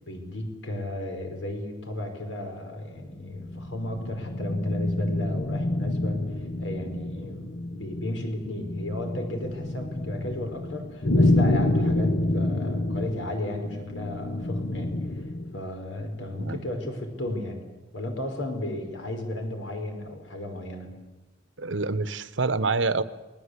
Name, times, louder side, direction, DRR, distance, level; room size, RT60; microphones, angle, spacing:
voice 1, 0.0-6.2 6.6-15.0 15.5-17.6 17.9-20.9, left 1 dB, 75° left, 4 dB, 5.4 m, -34 dB
sound 1, 3.0-15.6, left 1 dB, 50° left, 1.0 m, -28 dB
voice 2, 21.6-23.0, right 3 dB, 70° right, 14 dB, 1.1 m, -26 dB
28.0 x 20.0 x 8.3 m, 1.2 s
head